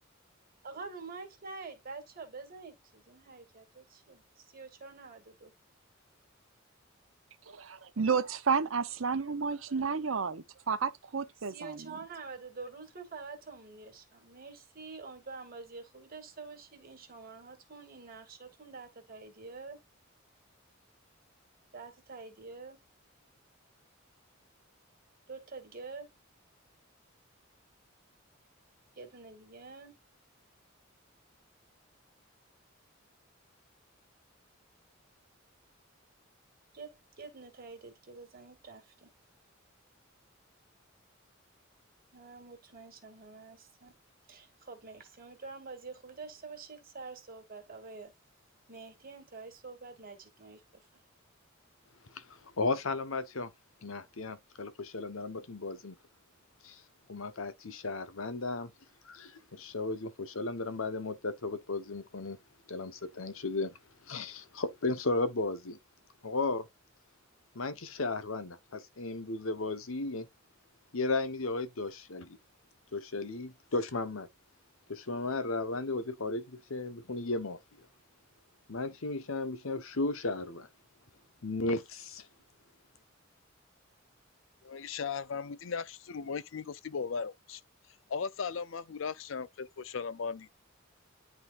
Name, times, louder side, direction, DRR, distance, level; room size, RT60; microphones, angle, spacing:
voice 1, 0.6-5.5 11.4-19.8 21.7-22.8 25.3-26.1 29.0-30.0 36.7-39.1 42.1-44.0 44.3-48.1 48.7-50.9, right 4 dB, 45° right, 2.2 m, -47 dB
voice 2, 7.6-11.8, right 5 dB, 75° right, 0.8 m, -31 dB
voice 3, 52.1-53.5 53.8-56.0 56.6-56.8 57.1-58.7 59.0-62.4 62.7-63.7 64.1-65.8 66.2-66.7 67.5-70.3 70.9-72.4 72.9-74.3 74.9-77.6 78.7-80.7 81.4-82.3, left 3 dB, 90° left, 1.0 m, -35 dB
voice 4, 84.6-87.6 88.1-90.5, left 5 dB, 70° left, 0.5 m, -37 dB
11.0 x 3.9 x 2.5 m
head